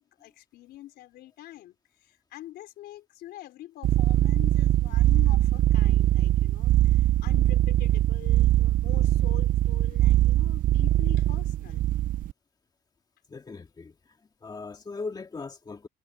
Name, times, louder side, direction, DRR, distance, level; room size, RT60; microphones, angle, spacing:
voice 1, 0.0-11.8, left 14 dB, 75° left, 4.3 m, -45 dB
sound 1, 3.8-12.3, right 14 dB, 55° right, 0.4 m, -22 dB
voice 2, 13.3-15.9, left 4 dB, 25° left, 2.1 m, -39 dB
cardioid pair, 110°, 17 cm